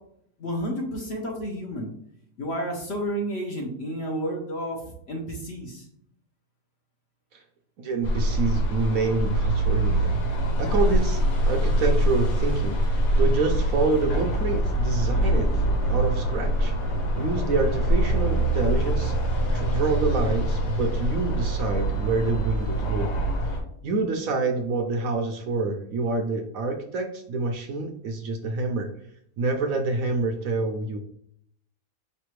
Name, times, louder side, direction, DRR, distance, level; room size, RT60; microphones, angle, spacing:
voice 1, 0.4-1.9 2.4-5.9, equal, 50° left, 0 dB, 0.9 m, -31 dB
voice 2, 7.8-16.7 17.2-19.1 19.5-23.1 23.8-28.9 29.4-31.0, right 3 dB, 70° right, 4 dB, 0.9 m, -27 dB
sound 1, 8.0-23.6, right 1 dB, 90° left, 1.5 m, -24 dB
5.2 x 3.3 x 3.1 m, 0.68 s
omnidirectional pair, 1.7 m